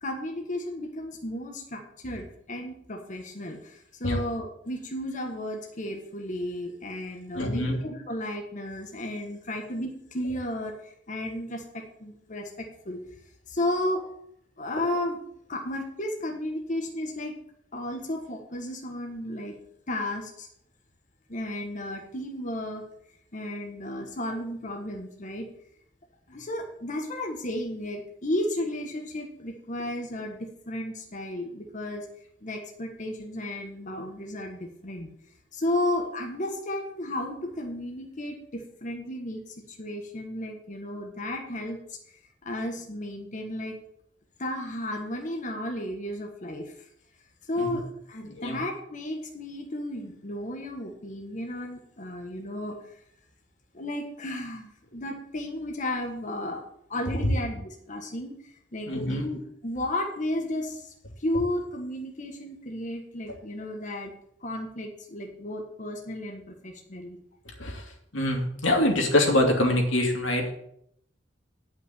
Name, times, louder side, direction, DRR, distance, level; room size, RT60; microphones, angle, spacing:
voice 1, 0.0-13.0 13.5-14.0 14.6-15.2 15.5-17.3 17.7-19.6 19.9-20.5 21.3-22.8 23.3-25.5 26.3-32.0 32.4-35.1 35.5-42.0 42.4-43.8 44.4-46.9 47.4-52.8 53.7-56.6 56.9-58.4 58.7-64.1 64.4-67.2, left 1 dB, 40° left, 1 dB, 1.4 m, -33 dB
voice 2, 7.3-7.8 47.6-47.8 48.3-48.6 58.9-59.2 67.6-67.8 68.1-70.5, left 1 dB, 90° left, 1 dB, 2.6 m, -24 dB
10.5 x 5.8 x 7.7 m, 0.71 s
head